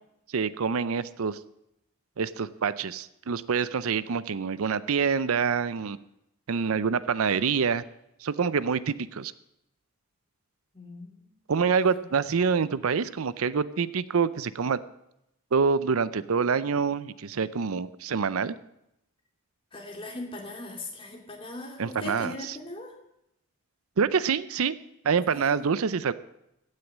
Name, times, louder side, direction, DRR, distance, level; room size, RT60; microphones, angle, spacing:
voice 1, 0.3-1.4 2.2-6.0 6.5-7.8 8.2-9.3 11.5-14.8 15.5-18.6 21.8-22.6 24.0-24.8 25.0-26.1, right 6 dB, 75° right, 16 dB, 0.5 m, -26 dB
voice 2, 10.7-11.4 11.8-12.1 19.7-22.9 25.3-25.7, left 1 dB, 25° left, 1 dB, 2.4 m, -40 dB
15.5 x 6.5 x 8.5 m, 0.82 s
head